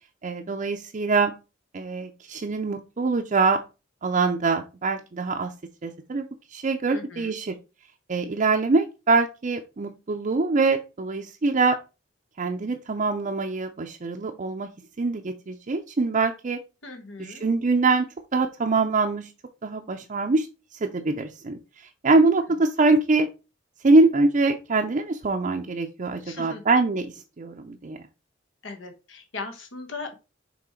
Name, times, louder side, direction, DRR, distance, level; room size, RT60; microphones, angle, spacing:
voice 1, 0.2-1.3 1.7-3.6 4.0-5.5 5.8-6.3 6.5-7.5 8.1-11.8 12.4-14.7 15.0-16.6 17.2-18.1 18.3-19.3 19.6-20.5 20.8-21.6 22.0-23.3 23.8-28.0, right 3 dB, 40° right, 3 dB, 0.5 m, -23 dB
voice 2, 6.9-7.3 16.8-17.4 26.2-26.6 28.6-30.1, left 3 dB, 75° left, 5 dB, 1.2 m, -38 dB
6.1 x 3.5 x 4.3 m, 0.29 s
head